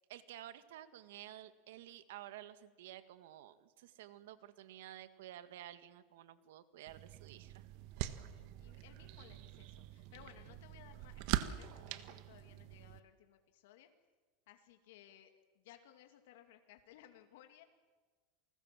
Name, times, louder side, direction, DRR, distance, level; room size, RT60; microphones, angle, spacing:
voice 1, 0.1-7.7, right 13 dB, 85° right, 11 dB, 1.9 m, -52 dB
sound 1, 6.9-13.0, right 14 dB, 55° right, 1.4 m, -43 dB
voice 2, 8.2-13.9 14.5-17.6, left 12 dB, 75° left, 5 dB, 2.4 m, -61 dB
28.5 x 20.0 x 7.6 m, 1.4 s
supercardioid pair, 150°, 0 cm